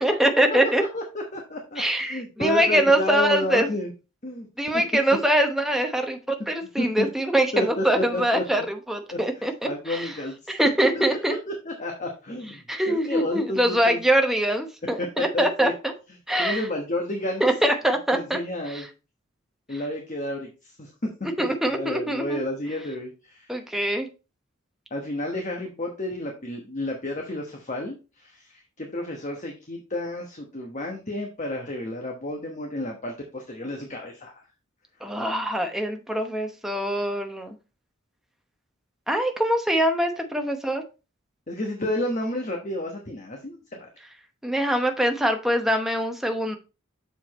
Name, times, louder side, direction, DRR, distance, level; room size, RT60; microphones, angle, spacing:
voice 1, 0.0-0.8 1.8-3.7 4.6-10.1 10.5-11.3 12.7-15.9 16.3-16.6 17.4-18.4 18.7-18.8 21.4-22.4 23.5-24.1 35.0-37.5 39.1-40.8 44.4-46.6, right 1 dB, ahead, 4 dB, 0.9 m, -23 dB
voice 2, 0.9-3.9 4.2-4.5 4.7-4.8 6.8-7.1 7.5-8.6 9.1-9.2 9.6-10.5 10.9-14.0 15.0-15.7 16.4-17.4 18.1-18.9 19.7-20.9 21.4-23.5 24.9-34.5 41.5-43.9, left 1 dB, 35° left, 2 dB, 1.1 m, -31 dB
7.0 x 4.8 x 4.1 m, 0.30 s
head